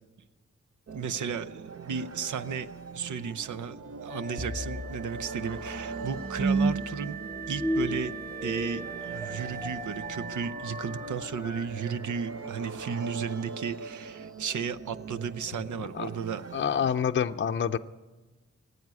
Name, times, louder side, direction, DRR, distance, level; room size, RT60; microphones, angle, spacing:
sound 1, 0.9-17.0, right 5 dB, 55° right, 0.7 m, -42 dB
voice 1, 0.9-7.2 7.5-8.1 8.4-16.4, right 6 dB, 90° right, 12 dB, 0.7 m, -34 dB
Wind instrument woodwind instrument, 4.1-11.6, right 3 dB, 30° right, 1.5 m, -42 dB
sound 2, 4.4-13.5, right 2 dB, 15° right, 0.7 m, -34 dB
voice 2, 16.5-17.8, left 7 dB, 40° left, 8 dB, 0.5 m, -27 dB
18.0 x 8.1 x 9.6 m, 1.2 s
cardioid pair, 70°, 29 cm